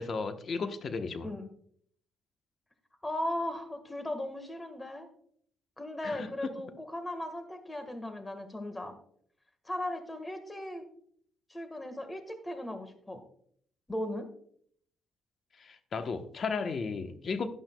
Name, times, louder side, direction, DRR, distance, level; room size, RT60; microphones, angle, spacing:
voice 1, 0.0-1.3 6.0-6.5 15.6-17.5, left 4 dB, 50° left, 1.0 m, -34 dB
voice 2, 3.0-5.1 5.8-8.9 9.6-10.9 11.5-13.2 13.9-14.3, left 1 dB, 15° left, 1.5 m, -37 dB
12.0 x 11.0 x 2.3 m
cardioid pair, 90°, 0 cm